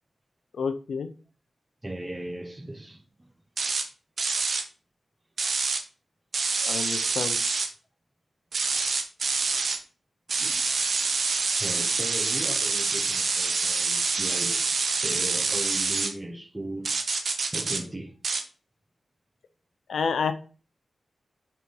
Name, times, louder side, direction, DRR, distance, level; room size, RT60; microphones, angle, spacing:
voice 1, 0.5-1.1 6.6-7.4 19.9-20.3, left 5 dB, 85° left, 0.6 m, -29 dB
voice 2, 1.8-3.3 10.4-10.7 11.6-14.8 15.0-16.9 17.5-18.1, right 1 dB, 20° right, 0.9 m, -37 dB
sound 1, 3.6-3.9 4.2-4.6 5.4-5.8 6.3-7.7 8.5-9.8 10.3-16.1 16.9-17.8 18.2-18.4, right 4 dB, 70° right, 0.9 m, -26 dB
4.7 x 4.4 x 5.3 m
wide cardioid pair, 80°, 0 cm